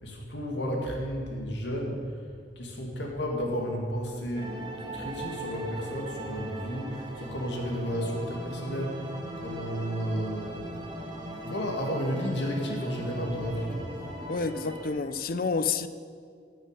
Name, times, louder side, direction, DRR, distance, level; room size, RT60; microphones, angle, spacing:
voice 1, 0.0-2.2 2.6-11.1 11.4-14.0, equal, 80° left, 2.2 m, -33 dB
sound 1, 4.4-14.9, right 1 dB, 25° right, 1.9 m, -39 dB
voice 2, 14.3-15.9, left 4 dB, 55° left, 0.6 m, -29 dB
12.0 x 6.7 x 9.1 m
head